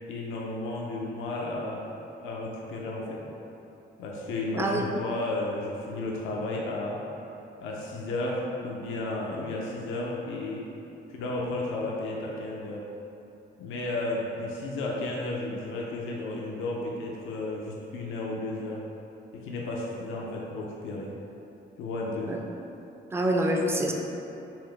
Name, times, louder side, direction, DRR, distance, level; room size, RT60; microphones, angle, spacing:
voice 1, 0.1-1.8 2.2-3.2 4.0-7.0 7.6-10.6 11.1-12.8 13.6-18.8 19.3-21.1 21.8-22.3, left 2 dB, 90° left, -2 dB, 0.5 m, -33 dB
voice 2, 4.5-4.9 22.3-22.4 23.1-23.9, right 1 dB, 10° right, 1 dB, 0.4 m, -26 dB
5.5 x 2.0 x 3.2 m, 2.9 s
cardioid pair, 90°, 20 cm